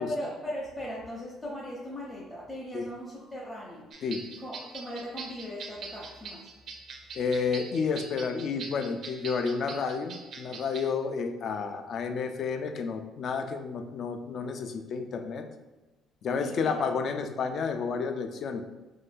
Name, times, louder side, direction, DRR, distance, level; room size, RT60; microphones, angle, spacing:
voice 1, 0.0-3.9 4.4-6.5 16.3-16.9, equal, 15° left, -6 dB, 0.6 m, -38 dB
sound 1, 3.9-10.9, right 4 dB, 55° right, 0.4 m, -43 dB
voice 2, 7.2-15.5 16.2-18.6, left 5 dB, 50° left, 7 dB, 0.3 m, -31 dB
2.6 x 2.4 x 3.4 m, 1.1 s
cardioid pair, 120°, 0 cm